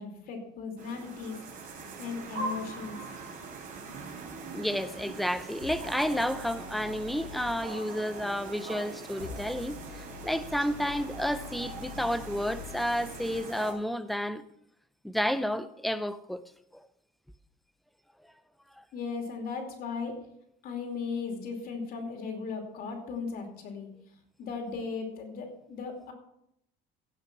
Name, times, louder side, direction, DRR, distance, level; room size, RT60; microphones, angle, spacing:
voice 1, 0.0-1.4 2.0-3.0 18.9-20.2 20.6-23.9 24.4-26.1, left 5 dB, 50° left, 2.7 m, -37 dB
sound 1, 0.8-13.7, right 3 dB, 45° right, 3.8 m, -42 dB
voice 2, 4.5-14.4 15.0-16.4 16.7-16.9, equal, ahead, 0.4 m, -31 dB
sound 2, 5.6-7.6 9.1-13.4, left 8 dB, 70° left, 3.3 m, -46 dB
16.5 x 5.9 x 6.0 m
cardioid pair, 170°, 19 cm